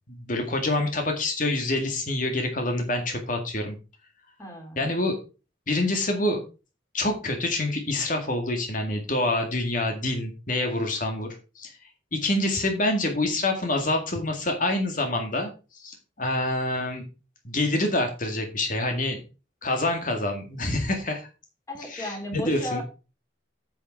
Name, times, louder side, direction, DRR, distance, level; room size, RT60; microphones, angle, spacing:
voice 1, 0.1-3.8 4.8-5.2 5.7-6.4 6.9-11.7 12.1-17.1 17.4-19.2 19.6-21.3 21.9-22.8, left 2 dB, 45° left, 4 dB, 2.0 m, -26 dB
voice 2, 4.4-4.8 21.7-22.8, left 1 dB, 15° left, 1 dB, 3.4 m, -34 dB
9.7 x 6.4 x 4.6 m, 0.31 s
head